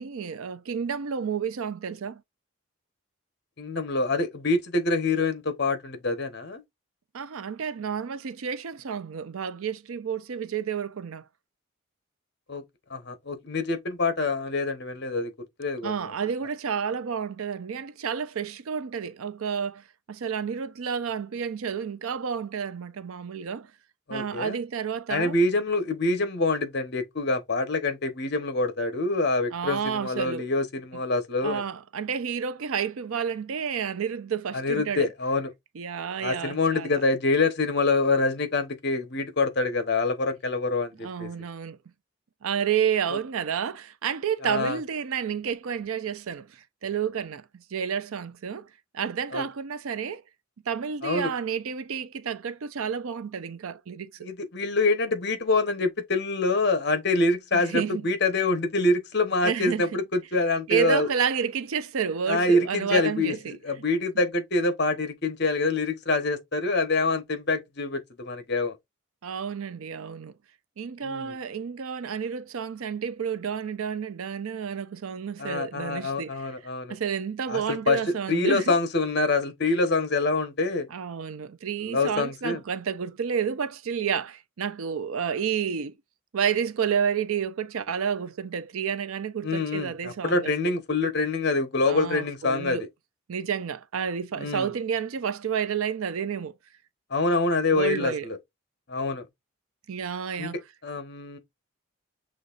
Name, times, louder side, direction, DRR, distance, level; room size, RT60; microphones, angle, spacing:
voice 1, 0.0-2.2 7.1-11.2 15.8-23.7 24.1-25.3 29.5-30.5 31.4-35.1 35.7-37.0 41.0-41.8 42.4-48.7 48.9-50.2 50.7-54.3 57.5-58.1 59.4-59.9 60.7-63.6 69.2-70.3 70.8-76.5 76.9-78.7 79.6-79.7 80.9-85.9 86.3-90.7 91.8-92.9 93.3-96.5 97.7-98.3 99.9-100.6, right 7 dB, 80° right, 0.5 m, -30 dB
voice 2, 3.6-6.6 12.5-12.6 12.9-15.3 15.6-15.9 24.1-24.6 25.1-31.6 34.5-35.5 36.2-41.3 43.1-43.2 44.4-44.8 49.3-49.4 51.0-51.3 54.2-61.1 62.3-63.3 63.6-68.8 71.0-71.4 75.4-76.9 77.5-78.0 78.3-80.9 81.8-82.6 89.4-92.9 94.4-94.7 97.1-98.4 98.9-99.2 100.4-100.5 100.8-101.4, left 3 dB, 50° left, 1.0 m, -26 dB
6.3 x 3.1 x 2.4 m
head